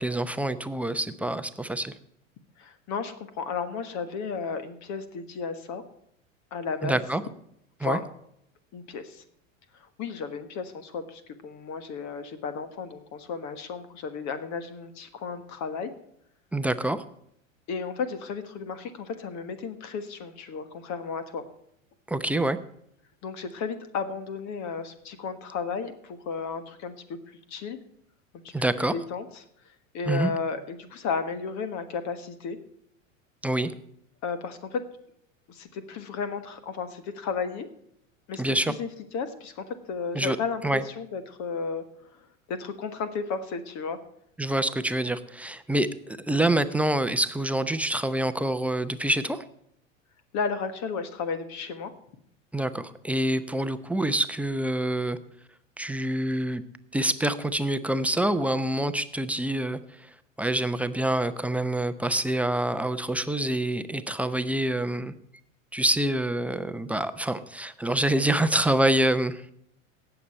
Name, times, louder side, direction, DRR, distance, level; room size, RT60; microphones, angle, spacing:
voice 1, 0.0-1.9 6.8-7.2 7.8-8.0 16.5-17.0 22.1-22.6 28.5-28.9 30.1-30.3 33.4-33.7 38.4-38.7 40.1-40.4 40.6-40.8 44.4-49.4 52.5-55.2 55.8-56.6 56.9-59.8 60.4-65.1 65.7-69.4, right 1 dB, 5° right, 10 dB, 0.7 m, -26 dB
voice 2, 2.6-5.8 6.5-7.0 7.8-8.0 8.7-9.2 10.0-15.9 17.7-21.4 23.2-27.2 27.5-27.8 28.9-29.4 29.9-32.6 34.2-34.8 35.5-37.7 38.3-38.9 39.1-41.8 42.5-44.0 50.3-51.9, left 5 dB, 45° left, 11 dB, 1.4 m, -33 dB
18.0 x 7.1 x 4.3 m, 0.74 s
hypercardioid pair, 95°, 39 cm